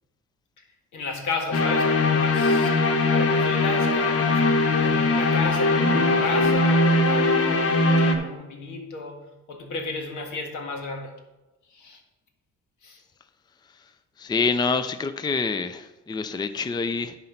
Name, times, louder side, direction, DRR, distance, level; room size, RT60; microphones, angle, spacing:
voice 1, 0.9-2.8 3.1-7.6 8.0-9.2 9.5-11.1 11.7-12.0 12.8-13.0, left 3 dB, 75° left, 3 dB, 1.8 m, -33 dB
sound 1, 1.5-8.2, left 2 dB, 50° left, 1.2 m, -20 dB
voice 2, 14.2-17.2, left 4 dB, 15° left, 10 dB, 0.4 m, -26 dB
10.5 x 4.4 x 5.7 m, 1.0 s
cardioid pair, 90°, 30 cm